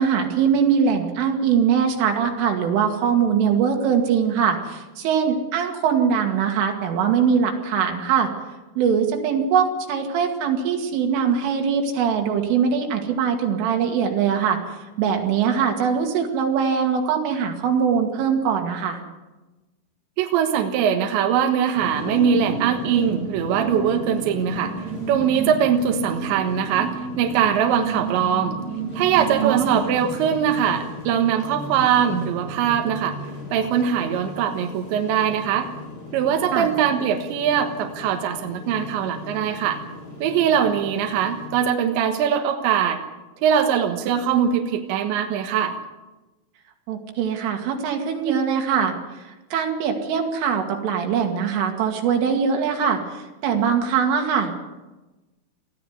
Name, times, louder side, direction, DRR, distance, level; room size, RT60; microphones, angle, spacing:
voice 1, 0.0-8.3 8.8-19.0 29.4-29.8 36.5-36.7 46.9-54.5, right 7 dB, 90° right, 3 dB, 4.8 m, -22 dB
voice 2, 20.2-24.7 25.1-28.6 28.9-33.2 33.5-35.7 36.1-39.8 40.2-43.0 43.4-45.8, right 8 dB, 70° right, 4 dB, 3.6 m, -22 dB
sound 1, 21.7-41.5, right 1 dB, 20° left, 7.0 m, -34 dB
20.0 x 14.5 x 9.7 m, 1.1 s
omnidirectional pair, 5.6 m